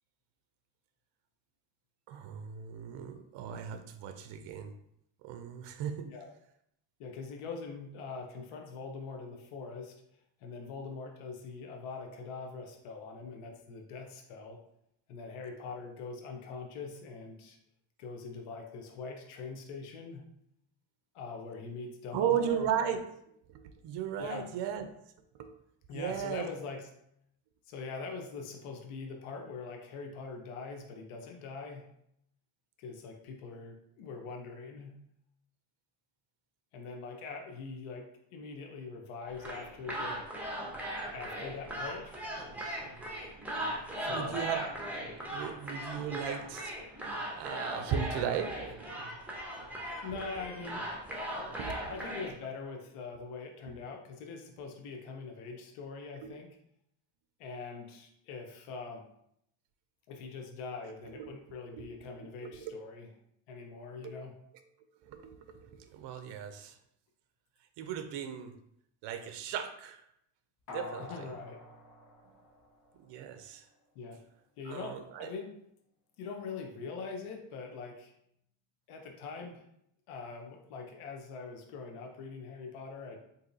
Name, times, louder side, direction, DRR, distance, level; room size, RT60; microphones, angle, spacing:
voice 1, 2.1-4.7 5.2-6.1 22.1-23.0 23.5-24.9 25.3-25.5 25.9-26.5 44.0-44.6 45.3-46.8 47.3-48.9 51.6-52.0 53.7-53.8 56.2-56.3 60.8-61.3 61.7-62.8 64.0-64.2 65.0-66.8 67.8-68.5 69.0-70.0 70.7-71.3 73.0-73.7 74.6-75.3, right 8 dB, 60° right, 8 dB, 0.5 m, -36 dB
voice 2, 7.0-9.9 10.4-14.6 15.1-17.6 18.0-20.3 21.1-22.7 24.2-24.5 25.9-26.9 27.7-31.9 32.8-35.0 36.7-40.3 41.1-42.2 44.0-44.4 50.0-50.9 51.9-56.5 57.4-59.0 60.1-63.1 63.5-64.3 71.0-71.6 74.0-74.2 74.6-75.5 76.2-78.1 78.9-79.6 80.1-83.2, left 4 dB, 80° left, 2 dB, 0.7 m, -43 dB
sound 1, 39.3-52.3, right 1 dB, 5° right, 0.8 m, -39 dB
sound 2, 70.7-73.2 73.6-73.7, left 3 dB, 45° left, 1.3 m, -47 dB
3.7 x 2.7 x 2.6 m, 0.74 s
supercardioid pair, 85°, 50 cm